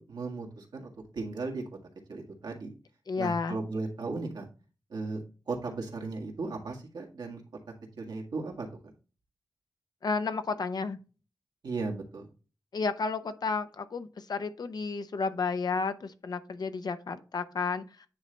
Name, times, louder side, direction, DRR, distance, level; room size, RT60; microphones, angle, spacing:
voice 1, 0.1-1.6 2.1-2.7 3.2-4.5 4.9-5.2 5.5-7.4 8.0-8.7 11.6-12.3, right 3 dB, 90° right, 1.8 m, -36 dB
voice 2, 3.1-3.6 10.0-11.0 12.7-18.1, left 4 dB, 70° left, 0.7 m, -32 dB
9.5 x 3.3 x 3.9 m
cardioid pair, 60°, 7 cm